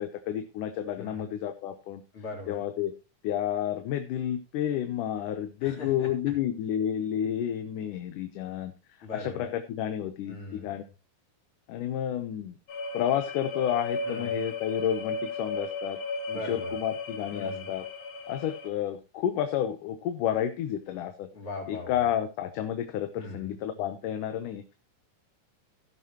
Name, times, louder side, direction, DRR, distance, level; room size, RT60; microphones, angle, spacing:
voice 1, 0.0-2.0 2.5-2.9 3.2-8.7 9.1-10.8 11.7-12.6 12.9-16.0 16.4-17.9 18.3-21.3 21.7-24.6, left 10 dB, 80° left, 8 dB, 2.4 m, -30 dB
voice 2, 1.0-1.3 2.1-2.7 5.6-6.1 9.0-9.5 10.3-10.7 14.0-14.4 16.3-16.7 17.3-17.7 21.3-22.1 23.2-23.6, left 3 dB, 40° left, 0 dB, 4.2 m, -40 dB
sound 1, 12.7-18.7, left 3 dB, 60° left, 1.3 m, -35 dB
16.5 x 7.7 x 2.9 m, 0.28 s
omnidirectional pair, 3.7 m